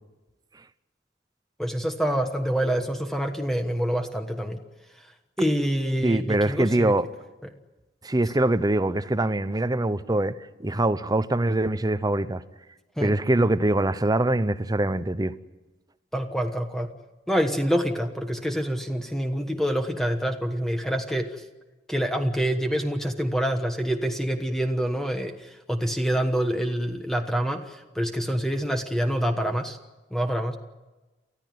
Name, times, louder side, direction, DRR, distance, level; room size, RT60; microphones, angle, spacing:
voice 1, 1.6-4.6 4.9-5.1 5.4-6.9 7.4-7.5 13.0-13.1 16.1-16.9 17.3-21.4 21.9-29.8 30.1-30.6, equal, ahead, 1.3 m, -26 dB
voice 2, 6.0-7.1 8.0-10.3 10.6-12.4 13.0-15.4, right 1 dB, 20° right, 0.8 m, -23 dB
29.5 x 14.5 x 9.4 m
head